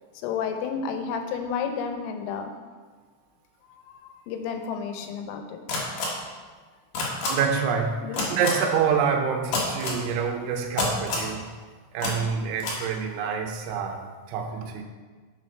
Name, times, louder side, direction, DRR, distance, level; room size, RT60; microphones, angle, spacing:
voice 1, 0.2-2.5 3.9-5.8 6.2-6.3 8.0-8.3 9.8-10.0, left 6 dB, 80° left, 6 dB, 3.5 m, -32 dB
sound 1, 5.7-6.1 6.9-7.3 8.1-8.5 9.5-10.0 10.8-11.3 12.0-12.1 12.6-12.7, left 3 dB, 55° left, 3.0 m, -27 dB
voice 2, 7.3-11.5 11.9-14.0 14.3-14.8, right 6 dB, 75° right, 3 dB, 3.4 m, -27 dB
11.5 x 7.7 x 4.6 m, 1.4 s
omnidirectional pair, 5.8 m